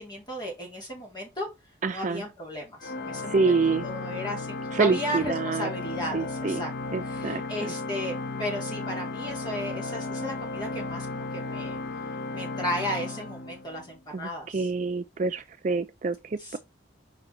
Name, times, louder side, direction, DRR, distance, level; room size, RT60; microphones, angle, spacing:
voice 1, 0.0-1.5 1.9-3.6 3.8-6.7 7.0-11.8 12.3-14.7 16.4-16.6, equal, 20° left, 3.2 m, -35 dB
voice 2, 1.8-2.2 3.3-3.8 4.7-5.7 6.1-6.6 6.9-7.7 14.1-16.6, right 4 dB, 40° right, 0.4 m, -27 dB
Organ, 2.8-14.0, left 3 dB, 55° left, 0.6 m, -34 dB
5.1 x 5.0 x 4.2 m
head